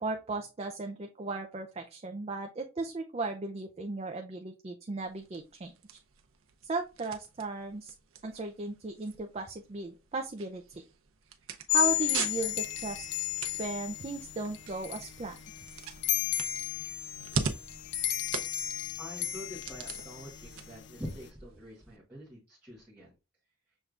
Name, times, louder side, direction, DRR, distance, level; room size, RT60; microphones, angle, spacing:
voice 1, 0.0-6.0 6.6-7.9 8.2-10.8 11.7-13.1 13.6-15.4, right 3 dB, 30° right, 4 dB, 0.4 m, -36 dB
sound 1, 5.0-22.0, right 5 dB, 75° right, 0.7 m, -42 dB
sound 2, 11.7-21.3, left 14 dB, 55° left, 0.6 m, -34 dB
voice 2, 19.0-23.1, equal, 10° right, -7 dB, 1.4 m, -45 dB
6.3 x 3.3 x 2.4 m, 0.29 s
head